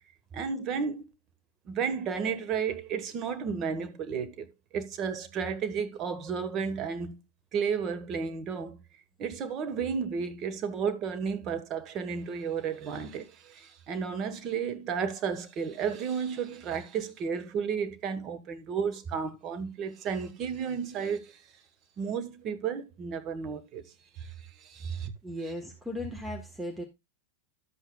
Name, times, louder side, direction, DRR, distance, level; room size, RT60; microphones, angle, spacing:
voice 1, 0.3-1.1 1.7-4.5 4.7-7.2 7.5-8.8 9.2-21.4 22.0-23.8 24.2-25.1, right 6 dB, 35° right, 1.5 m, -33 dB
voice 2, 24.8-26.8, right 1 dB, 10° right, 1.5 m, -36 dB
12.0 x 8.0 x 2.4 m
figure-of-eight pair, 90°, 0 cm